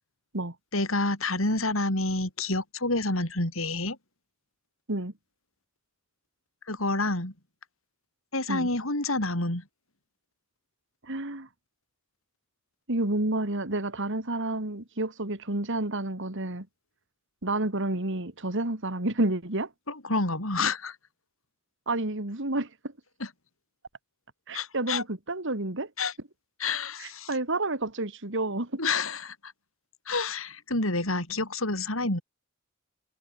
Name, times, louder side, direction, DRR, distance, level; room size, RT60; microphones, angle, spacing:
voice 1, 0.7-4.0 6.7-7.3 8.3-9.6 19.9-20.9 23.2-23.3 24.5-25.0 26.0-26.1 26.6-27.3 28.8-29.5 30.1-32.2, left 2 dB, 70° left, 6.5 m, -28 dB
voice 2, 11.0-11.5 12.9-16.7 17.4-19.7 21.9-22.7 24.5-25.9 27.0-28.8, right 2 dB, 60° right, 2.9 m, -30 dB
head